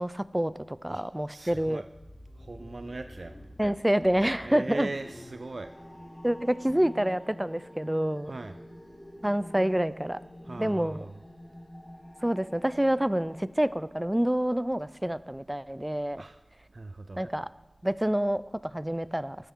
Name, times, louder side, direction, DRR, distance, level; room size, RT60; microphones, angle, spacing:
voice 1, 0.0-1.8 3.6-4.9 6.2-8.3 9.2-10.2 10.6-11.1 12.2-16.2 17.2-17.5 17.8-19.4, right 1 dB, 15° right, 16 dB, 0.4 m, -27 dB
voice 2, 0.9-1.9 2.4-3.3 4.4-5.7 8.3-8.6 10.4-11.1 16.2-16.4 16.7-17.2, right 2 dB, 80° right, 9 dB, 0.4 m, -39 dB
sound 1, 1.5-7.1, left 1 dB, 60° left, 2.5 m, -50 dB
sound 2, 3.3-13.5, equal, 40° left, 4.3 m, -48 dB
15.5 x 10.0 x 3.7 m, 1.0 s
wide cardioid pair, 60°, 0 cm